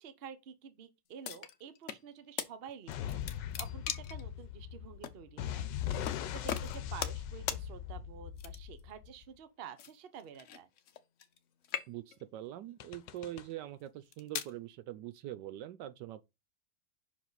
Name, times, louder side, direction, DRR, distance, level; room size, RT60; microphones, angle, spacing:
voice 1, 0.0-5.7 6.3-10.7, right 7 dB, 45° right, 0.8 m, -50 dB
sound 1, 1.2-2.0 2.4-2.5 2.9-4.2 5.0-5.2 6.0-6.2 6.5-7.2 7.5-7.6 8.4-8.8 9.8-11.4 11.6-12.2 12.9-13.2 13.9-14.5, left 8 dB, 60° left, 0.8 m, -39 dB
sound 2, 2.9-9.3 12.8-13.4, left 10 dB, 75° left, 1.3 m, -40 dB
voice 2, 11.9-16.2, right 13 dB, 75° right, 1.2 m, -43 dB
5.9 x 5.0 x 4.0 m
omnidirectional pair, 2.0 m